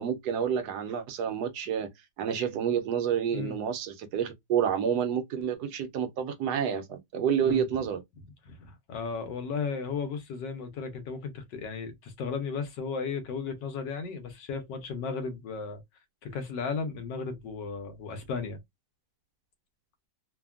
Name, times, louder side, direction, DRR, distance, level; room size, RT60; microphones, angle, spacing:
voice 1, 0.0-1.9 2.2-8.0, right 8 dB, 75° right, 1.1 m, -29 dB
voice 2, 8.5-15.8 16.2-18.6, left 5 dB, 80° left, 1.4 m, -35 dB
3.3 x 2.2 x 2.3 m
omnidirectional pair, 1.9 m